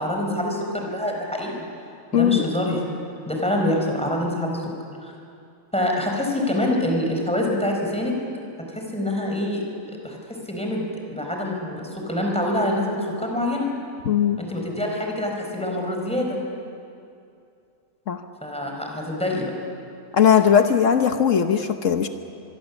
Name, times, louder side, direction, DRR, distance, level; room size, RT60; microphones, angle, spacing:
voice 1, 0.0-1.6 2.1-2.9 3.3-4.7 5.0-5.1 5.7-8.1 8.7-13.7 14.4-16.4 18.4-19.5, left 1 dB, 5° left, 0 dB, 4.3 m, -26 dB
voice 2, 2.1-2.5 14.1-14.4 18.1-18.2 20.1-22.1, left 8 dB, 70° left, 7 dB, 1.3 m, -18 dB
24.0 x 24.0 x 7.1 m, 2.5 s
omnidirectional pair, 1.4 m